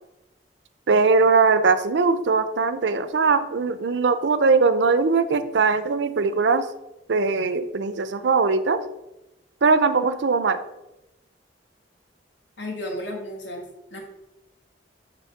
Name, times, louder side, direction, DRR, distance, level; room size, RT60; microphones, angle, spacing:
voice 1, 0.9-6.6 7.1-8.8 9.6-10.6, right 4 dB, 80° right, 12 dB, 0.5 m, -20 dB
voice 2, 12.6-13.6 13.9-14.0, left 1 dB, 85° left, 1 dB, 1.7 m, -33 dB
6.9 x 3.5 x 5.7 m, 0.95 s
head